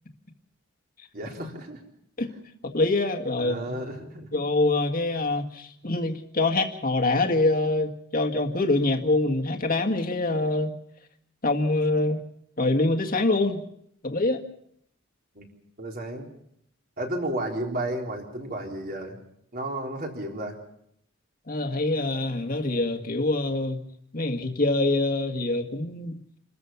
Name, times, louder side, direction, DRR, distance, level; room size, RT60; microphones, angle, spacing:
voice 1, 1.1-1.8 3.4-4.4 15.3-15.4 15.8-16.3 17.0-19.2 19.5-20.6, right 1 dB, 45° right, 1 dB, 4.0 m, -32 dB
voice 2, 2.6-3.6 4.3-10.8 11.4-12.2 12.6-13.6 14.0-14.4 21.5-23.8 24.1-26.1, left 2 dB, 45° left, 4 dB, 1.8 m, -25 dB
28.0 x 14.0 x 7.1 m, 0.72 s
head